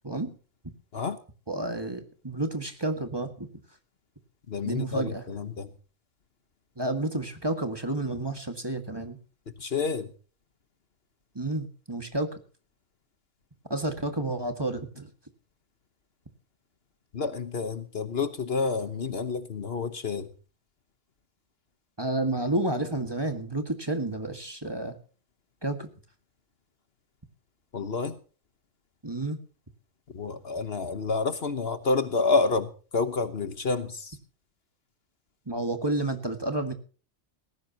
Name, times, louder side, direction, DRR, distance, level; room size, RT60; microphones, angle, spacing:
voice 1, 1.5-3.5 4.6-5.2 6.8-9.2 11.4-12.3 13.7-15.1 22.0-25.0 25.6-25.9 29.0-29.4 35.5-36.7, right 2 dB, 20° right, 6 dB, 1.9 m, -30 dB
voice 2, 4.5-5.7 9.6-10.1 17.1-20.3 27.7-28.2 30.1-34.2, left 4 dB, 55° left, 11 dB, 1.3 m, -29 dB
18.5 x 16.0 x 2.9 m, 0.38 s
omnidirectional pair, 1.3 m